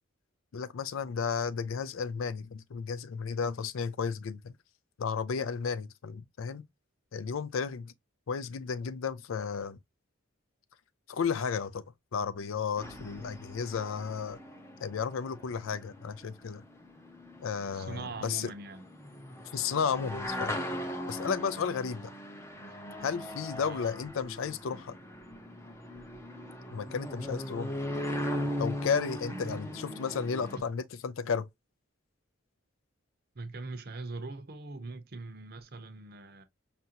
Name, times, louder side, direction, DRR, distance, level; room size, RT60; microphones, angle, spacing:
voice 1, 0.5-4.6 5.0-6.7 7.1-7.9 8.3-9.8 11.1-11.8 12.1-14.4 14.8-16.6 17.4-18.5 19.5-20.6 21.1-22.1 23.0-25.0 26.7-27.7 28.6-31.5, left 6 dB, 75° left, 0.4 m, -33 dB
sound 1, 12.8-30.6, left 1 dB, 15° left, 0.6 m, -39 dB
voice 2, 17.7-18.8 23.5-23.8 29.3-30.0 30.6-30.7 33.3-36.4, right 3 dB, 50° right, 0.6 m, -42 dB
5.4 x 2.5 x 2.8 m
head